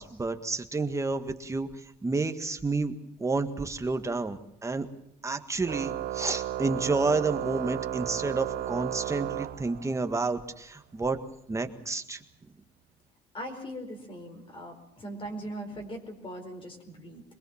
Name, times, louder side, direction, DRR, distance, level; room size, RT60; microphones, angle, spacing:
voice 1, 0.0-1.7 2.0-2.9 3.2-4.9 5.2-11.2 11.5-12.2, right 3 dB, 15° right, 7 dB, 1.8 m, -30 dB
Organ, 5.7-10.2, right 12 dB, 70° right, 1.2 m, -34 dB
voice 2, 13.3-17.2, equal, 30° left, 4 dB, 4.7 m, -40 dB
23.5 x 21.5 x 7.3 m, 0.73 s
cardioid pair, 110°, 17 cm